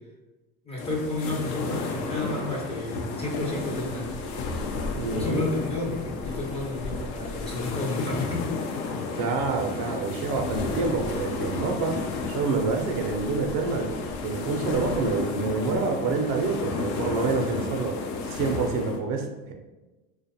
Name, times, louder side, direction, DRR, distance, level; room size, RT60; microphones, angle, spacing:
voice 1, 0.7-4.1 5.1-8.4, left 2 dB, 15° left, -3 dB, 0.4 m, -31 dB
sound 1, 0.8-19.0, left 4 dB, 70° left, 0.5 m, -32 dB
voice 2, 4.9-5.4 9.2-19.5, right 4 dB, 55° right, 3 dB, 0.5 m, -27 dB
2.4 x 2.2 x 2.7 m, 1.1 s
supercardioid pair, 100°, 41 cm